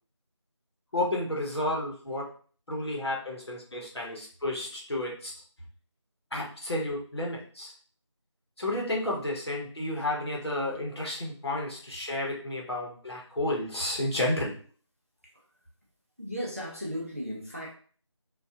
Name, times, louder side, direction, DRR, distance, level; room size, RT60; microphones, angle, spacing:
voice 1, 0.9-2.3 2.7-5.4 6.3-7.7 8.6-14.6, left 1 dB, 55° left, -2 dB, 1.0 m, -31 dB
voice 2, 16.2-17.7, equal, 30° right, -2 dB, 0.4 m, -35 dB
2.6 x 2.4 x 2.4 m, 0.43 s
figure-of-eight pair, 170°, 16 cm